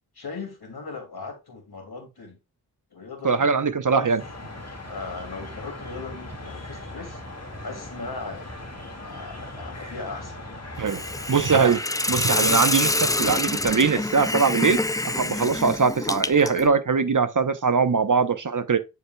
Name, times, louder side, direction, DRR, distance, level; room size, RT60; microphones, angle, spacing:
voice 1, 0.1-2.4 2.9-3.5 4.0-4.1 4.9-7.2 7.6-8.5 9.0-10.4, left 4 dB, 70° left, 2.5 m, -38 dB
voice 2, 3.2-4.2 10.8-11.0 11.3-11.8 12.1-18.8, right 5 dB, 50° right, 0.9 m, -21 dB
sound 1, 4.2-11.6, left 1 dB, 40° left, 2.0 m, -39 dB
Hiss, 10.9-16.7, left 2 dB, 10° left, 0.4 m, -26 dB
9.5 x 4.7 x 2.2 m
cardioid pair, 45°, 39 cm